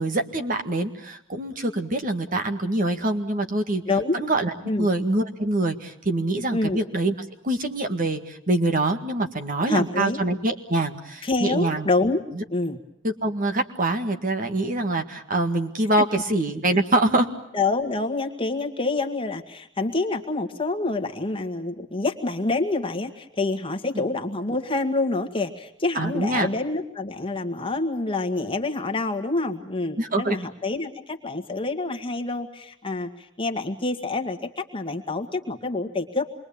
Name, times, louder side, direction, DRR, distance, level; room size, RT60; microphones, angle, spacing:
voice 1, 0.0-3.8 4.1-7.1 7.4-11.9 12.4-12.5 13.0-17.3 23.9-24.0 25.9-26.5 30.0-30.4, right 2 dB, 40° right, 5 dB, 1.9 m, -25 dB
voice 2, 3.9-4.2 4.7-4.9 6.5-6.8 9.7-10.2 11.2-12.2 12.5-12.8 17.5-36.3, left 3 dB, 25° left, 4 dB, 1.9 m, -27 dB
27.0 x 22.5 x 8.7 m, 0.74 s
head